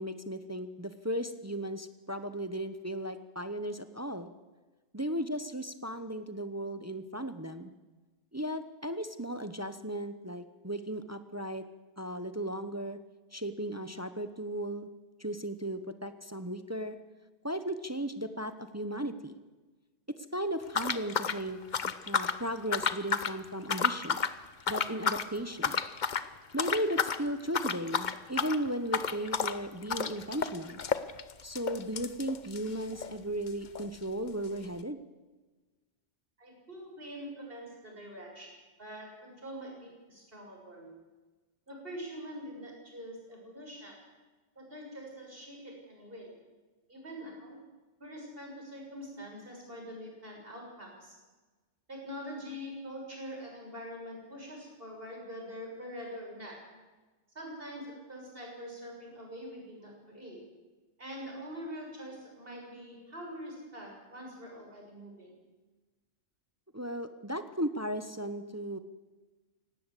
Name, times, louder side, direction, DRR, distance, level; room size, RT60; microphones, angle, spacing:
voice 1, 0.0-4.3 4.9-7.7 8.3-11.7 12.0-13.0 13.3-14.9 15.2-17.0 17.4-19.4 20.1-24.3 24.7-25.8 26.5-30.8 31.4-35.0 66.7-68.8, right 1 dB, 15° right, 10 dB, 0.8 m, -36 dB
sound 1, 20.7-22.4 22.7-23.3 23.6-24.4 24.7-25.3 25.6-26.3 26.6-27.2 27.5-33.2 33.5-33.6 33.7-33.9 34.5-34.6, left 6 dB, 45° left, 0.9 m, -31 dB
voice 2, 36.4-40.9 41.7-44.0 44.6-46.3 46.9-47.6 48.0-51.2 51.9-56.7 57.4-60.4 61.0-65.3, equal, 50° right, -1 dB, 6.9 m, -44 dB
19.0 x 17.0 x 8.3 m, 1.3 s
omnidirectional pair, 1.2 m